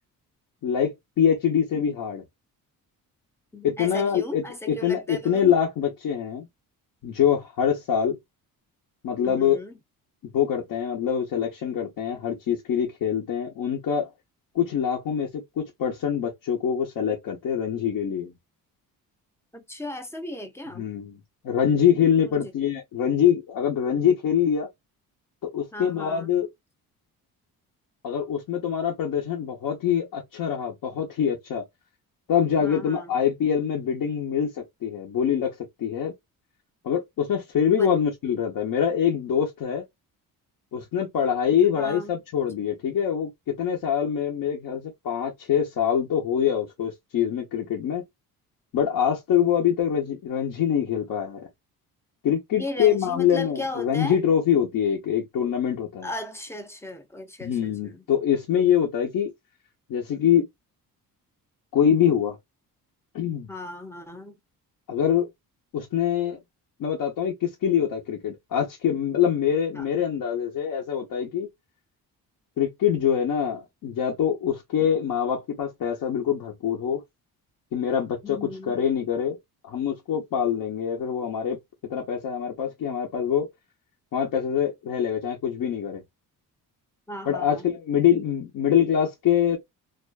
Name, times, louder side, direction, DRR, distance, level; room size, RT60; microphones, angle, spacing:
voice 1, 0.6-2.2 3.6-6.5 7.0-8.2 9.0-9.6 10.3-14.1 14.5-18.3 20.8-21.1 21.4-24.7 25.4-26.5 28.0-31.6 32.3-35.5 35.8-36.1 36.8-39.8 40.7-48.0 48.7-51.4 52.2-56.1 57.4-59.3 59.9-60.5 61.7-62.4 63.1-63.5 64.9-65.3 65.7-66.4 66.8-71.5 72.6-77.0 77.7-79.4 79.6-81.6 81.9-83.5 84.1-86.0 87.3-89.6, left 8 dB, 65° left, 0.9 m, -24 dB
voice 2, 3.5-5.5 9.2-9.8 19.5-20.9 22.2-22.5 25.7-26.3 32.6-33.1 37.8-37.9 41.7-42.2 52.5-54.2 56.0-58.0 63.5-64.4 69.7-69.9 78.2-78.8 87.1-87.7, left 1 dB, 5° left, 0.4 m, -36 dB
2.5 x 2.3 x 2.3 m
cardioid pair, 130°, 36 cm